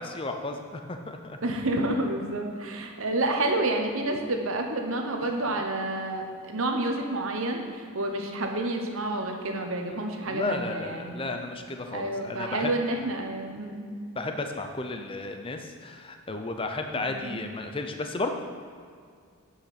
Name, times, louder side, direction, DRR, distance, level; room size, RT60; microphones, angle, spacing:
voice 1, 0.0-1.4 10.2-12.7 14.1-18.3, left 2 dB, 25° left, 5 dB, 0.5 m, -33 dB
voice 2, 1.4-11.3 11.9-13.9 16.9-17.5, right 2 dB, 70° right, 3 dB, 1.1 m, -29 dB
8.9 x 5.8 x 5.9 m, 2.1 s
head